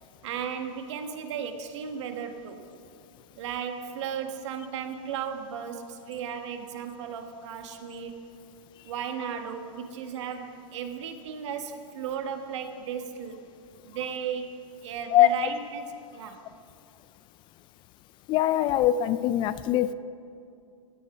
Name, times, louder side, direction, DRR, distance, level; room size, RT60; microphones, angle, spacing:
voice 1, 0.2-2.6 3.4-8.2 8.8-13.5 13.8-14.6 14.8-16.4, right 7 dB, 60° right, 6 dB, 1.5 m, -35 dB
voice 2, 18.3-19.9, left 12 dB, 30° left, 15 dB, 0.3 m, -22 dB
16.5 x 7.6 x 7.2 m, 2.5 s
hypercardioid pair, 120°, 17 cm